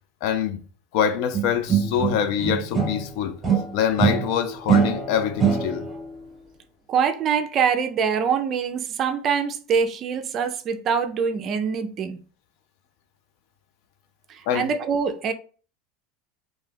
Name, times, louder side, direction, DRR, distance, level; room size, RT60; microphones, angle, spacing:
voice 1, 0.2-0.6 0.9-3.4 3.7-5.9 14.5-14.7, left 8 dB, 65° left, 0.4 m, -25 dB
sound 1, 1.3-3.1 3.4-6.0, right 6 dB, 15° right, 1.0 m, -23 dB
voice 2, 6.9-12.2 14.3-15.3, right 6 dB, 40° right, 0.4 m, -24 dB
2.6 x 2.3 x 3.3 m
supercardioid pair, 125°, 0 cm